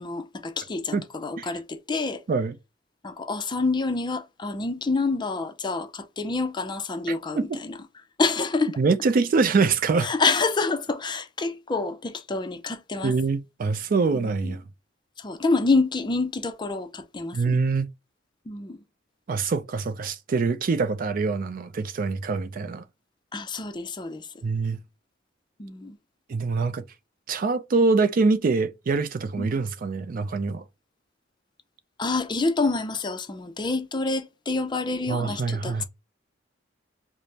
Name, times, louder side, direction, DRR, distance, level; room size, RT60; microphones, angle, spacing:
voice 1, 0.0-2.2 3.0-7.8 8.2-8.8 10.0-13.1 14.1-14.5 15.2-17.6 18.5-18.8 23.3-24.3 25.6-26.0 29.4-29.5 32.0-35.8, left 3 dB, 25° left, 0.5 m, -27 dB
voice 2, 7.1-7.6 8.8-10.1 13.0-14.6 17.3-17.9 19.3-22.8 24.4-24.8 26.3-26.8 27.3-30.6 35.1-35.8, right 4 dB, 50° right, 0.4 m, -24 dB
5.0 x 2.0 x 2.8 m
head